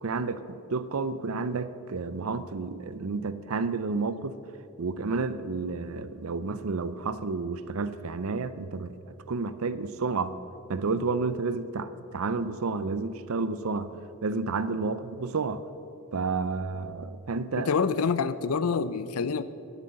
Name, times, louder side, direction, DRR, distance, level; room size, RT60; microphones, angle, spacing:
voice 1, 0.0-4.4 4.8-9.0 9.3-10.3 10.7-13.9 14.2-15.7 16.1-17.7, right 4 dB, 70° right, 14 dB, 0.5 m, -30 dB
voice 2, 17.6-19.4, left 5 dB, 80° left, 15 dB, 0.5 m, -27 dB
10.5 x 8.3 x 7.6 m, 2.9 s
head